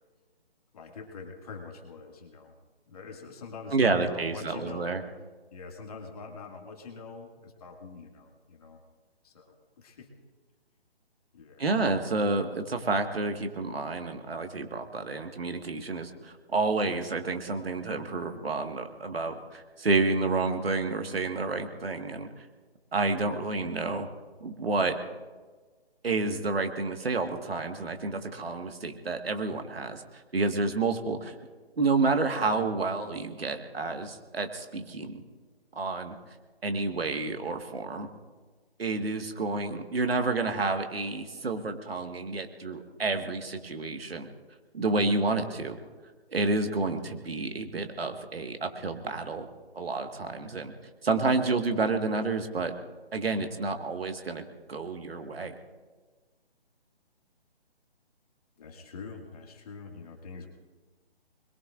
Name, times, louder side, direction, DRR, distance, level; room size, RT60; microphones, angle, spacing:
voice 1, 0.7-2.6 2.9-5.0 5.5-8.8 9.2-10.1 11.3-11.7 58.6-60.5, left 4 dB, 35° left, 1 dB, 2.2 m, -44 dB
voice 2, 3.7-5.0 11.6-22.5 22.9-24.1 24.4-25.0 26.0-31.3 31.8-35.2 35.7-36.2 36.6-38.1 38.8-44.3 44.7-45.8 46.3-49.5 49.7-50.7 51.0-52.7 53.1-54.4 54.7-55.5, right 3 dB, 70° right, 6 dB, 1.7 m, -29 dB
26.5 x 22.0 x 2.5 m, 1.4 s
figure-of-eight pair, 145°, 31 cm